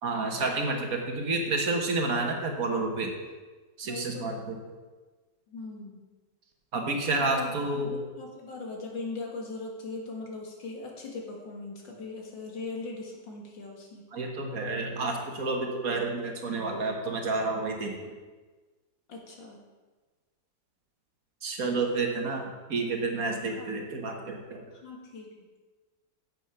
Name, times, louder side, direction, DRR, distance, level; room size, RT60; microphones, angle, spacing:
voice 1, 0.0-3.1 3.8-4.6 6.7-8.0 14.1-18.1 21.4-24.7, right 3 dB, 55° right, 3 dB, 1.5 m, -30 dB
voice 2, 3.8-4.3 5.5-6.0 7.1-14.1 19.1-19.6 23.5-23.9 24.7-25.5, left 3 dB, 85° left, 0 dB, 2.4 m, -40 dB
8.2 x 7.9 x 5.6 m, 1.3 s
omnidirectional pair, 2.0 m